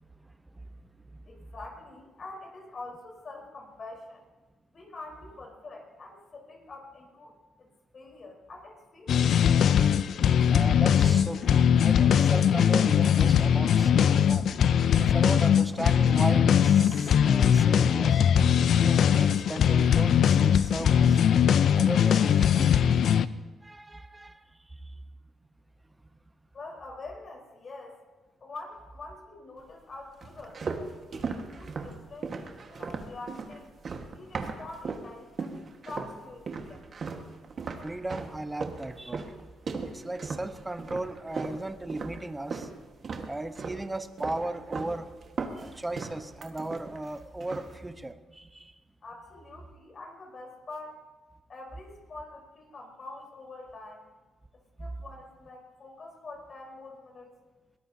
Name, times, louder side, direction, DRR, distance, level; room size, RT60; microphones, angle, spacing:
voice 1, 1.3-4.2 4.7-7.3 7.6-7.7 7.9-9.4 26.5-28.0 28.4-30.6 31.1-33.7 34.1-36.9 49.0-51.0 51.5-54.1 54.8-57.3, left 2 dB, 45° left, 1 dB, 4.0 m, -45 dB
sound 1, 9.1-23.3, left 8 dB, 65° left, 0.5 m, -21 dB
voice 2, 10.5-14.5 15.0-18.2 18.8-21.2 21.8-22.8 23.6-24.4 37.8-39.3 39.9-42.7 43.3-45.1 45.6-48.7, right 2 dB, 15° right, 10 dB, 0.9 m, -36 dB
sound 2, 30.2-35.1 35.4-36.2 36.5-42.7 43.0-43.8 44.2-45.0 45.2-47.1 47.4-47.8, right 4 dB, 45° right, 1.4 m, -37 dB
22.0 x 17.5 x 2.7 m, 1.3 s
cardioid pair, 90°, 0 cm